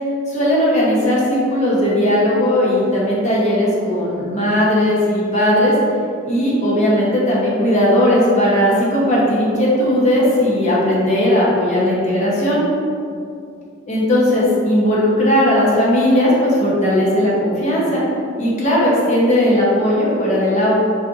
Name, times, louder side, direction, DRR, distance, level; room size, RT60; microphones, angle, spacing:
voice 1, 0.3-5.7 6.2-12.6 13.9-18.0 18.4-20.8, left 1 dB, 35° left, -6 dB, 1.0 m, -17 dB
4.2 x 3.6 x 2.6 m, 2.4 s
head